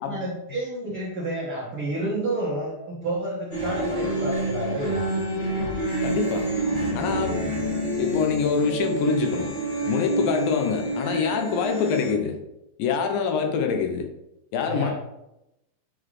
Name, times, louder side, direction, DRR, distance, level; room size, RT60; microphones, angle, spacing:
voice 1, 0.1-5.0 7.3-7.4 10.2-10.3 14.6-14.9, right 1 dB, 70° right, -5 dB, 1.3 m, -30 dB
sound 1, 3.5-12.1, right 1 dB, 45° left, 1.4 m, -27 dB
voice 2, 6.0-6.5 7.0-7.4 8.0-9.5 9.8-12.4 12.8-14.1 14.5-14.9, left 6 dB, 80° left, 5 dB, 2.3 m, -25 dB
9.5 x 3.8 x 3.2 m, 0.88 s
omnidirectional pair, 4.2 m